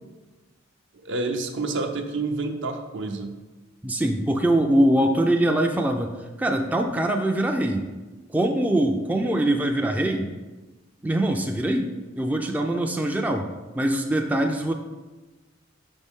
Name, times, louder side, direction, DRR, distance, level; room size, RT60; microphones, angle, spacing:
voice 1, 1.0-3.3, right 3 dB, 65° right, 5 dB, 0.6 m, -28 dB
voice 2, 3.8-6.1 6.4-7.8 8.3-10.3 11.0-11.9 12.2-13.5 13.8-14.7, right 1 dB, 10° right, 2 dB, 0.3 m, -23 dB
5.3 x 5.3 x 3.6 m, 1.2 s
head